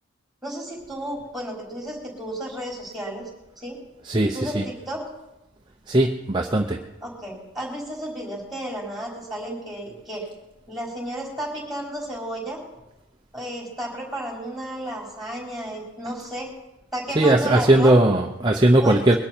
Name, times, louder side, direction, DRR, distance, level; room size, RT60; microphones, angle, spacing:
voice 1, 0.4-3.3 3.6-3.8 4.3-5.1 7.0-10.2 10.7-12.6 13.3-16.5 16.9-18.0 18.8-19.2, right 1 dB, ahead, -2 dB, 4.5 m, -32 dB
voice 2, 4.0-4.6 5.9-6.8 17.2-19.2, right 1 dB, 20° right, 2 dB, 0.8 m, -18 dB
22.0 x 12.0 x 4.5 m, 0.96 s
head